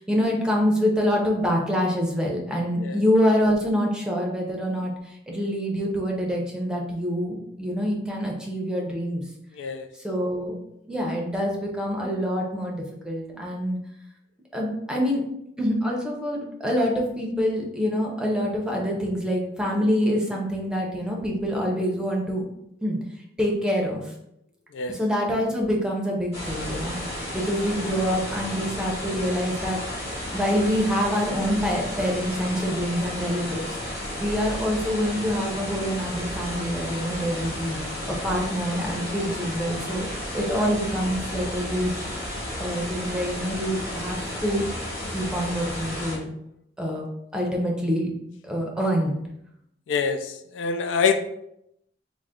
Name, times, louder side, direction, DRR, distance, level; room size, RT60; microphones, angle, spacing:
voice 1, 0.0-4.9 5.3-9.2 10.0-10.5 10.9-13.8 14.5-15.2 15.6-22.4 22.8-23.0 23.4-24.0 24.9-27.0 27.3-29.8 30.3-33.6 34.2-37.8 38.1-40.1 40.3-42.1 42.6-44.6 45.1-46.3 46.8-47.0 47.3-48.1 48.4-49.2, equal, 5° right, -2 dB, 0.6 m, -26 dB
voice 2, 9.6-9.9 24.7-25.0 49.9-51.2, left 5 dB, 80° left, 8 dB, 0.3 m, -25 dB
sound 1, 26.3-46.2, left 1 dB, 35° left, 1.5 m, -33 dB
3.8 x 2.1 x 3.6 m, 0.78 s
head